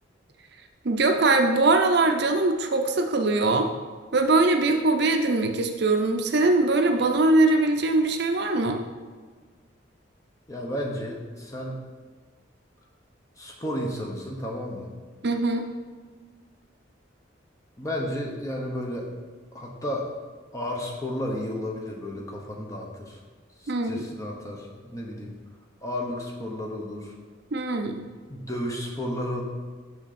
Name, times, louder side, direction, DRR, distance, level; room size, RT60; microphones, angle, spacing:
voice 1, 0.8-3.7 4.1-8.8 15.2-15.7 23.7-24.1 27.5-28.1, right 2 dB, 60° right, 5 dB, 0.6 m, -22 dB
voice 2, 10.5-11.7 13.4-14.9 17.8-19.1 19.5-20.1 20.5-23.2 23.6-25.3 25.8-27.1 28.3-29.4, left 1 dB, 15° left, -1 dB, 1.0 m, -32 dB
6.4 x 6.2 x 4.2 m, 1.5 s
head